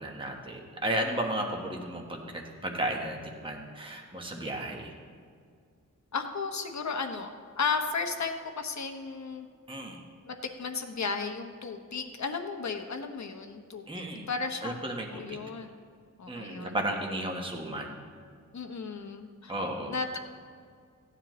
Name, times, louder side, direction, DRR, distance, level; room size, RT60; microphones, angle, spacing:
voice 1, 0.0-5.0 9.7-10.0 13.9-14.3 14.6-15.4 16.3-18.0 19.5-20.0, right 1 dB, 15° right, 1 dB, 1.2 m, -34 dB
voice 2, 6.1-7.3 7.6-9.5 10.2-14.8 15.1-15.7 16.2-16.8 18.5-19.5 19.8-20.2, left 5 dB, 60° left, 5 dB, 1.0 m, -34 dB
16.5 x 9.9 x 3.1 m, 2.2 s
wide cardioid pair, 135°, 32 cm